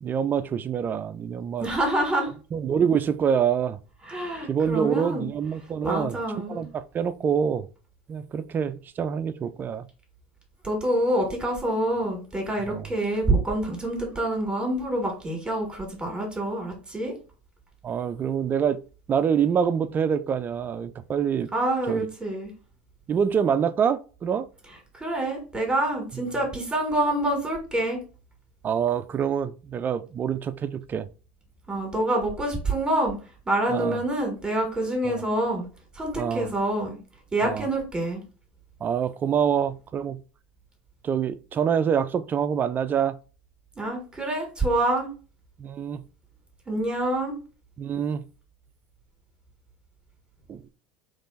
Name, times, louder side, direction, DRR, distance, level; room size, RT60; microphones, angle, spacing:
voice 1, 0.0-1.7 2.5-3.8 4.5-6.2 6.5-7.7 8.1-9.9 12.7-12.9 17.8-18.8 19.1-21.5 21.9-22.1 23.1-24.5 26.1-26.2 28.6-31.1 33.7-34.0 35.0-35.2 36.2-36.5 37.4-37.7 38.8-40.2 41.0-43.2 45.6-46.0 47.8-48.3 50.5-50.6, right 7 dB, 35° right, 0.4 m, -26 dB
voice 2, 1.6-2.3 4.0-5.3 5.8-6.6 10.6-17.1 21.5-22.5 25.0-28.0 31.7-33.2 33.5-35.7 36.0-37.0 37.3-38.2 43.8-45.1 46.7-47.3, right 1 dB, 15° right, 1.9 m, -26 dB
3.5 x 3.2 x 4.1 m
hypercardioid pair, 80°, 6 cm